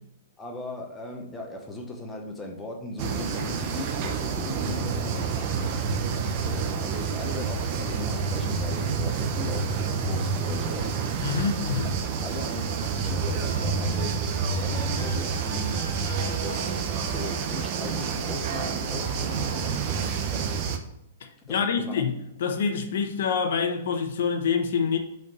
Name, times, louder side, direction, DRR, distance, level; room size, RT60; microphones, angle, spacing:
voice 1, 0.4-5.8 6.4-11.3 11.8-15.8 16.2-16.8 17.0-20.4 21.5-22.0, left 2 dB, 5° left, 0.9 m, -38 dB
sound 1, 3.0-20.8, right 5 dB, 35° right, 0.7 m, -28 dB
voice 2, 11.2-11.9 21.2-25.0, left 6 dB, 65° left, 1.0 m, -26 dB
sound 2, 13.4-19.8, right 2 dB, 15° right, 2.6 m, -42 dB
5.7 x 4.5 x 5.3 m
hypercardioid pair, 165°, 0 cm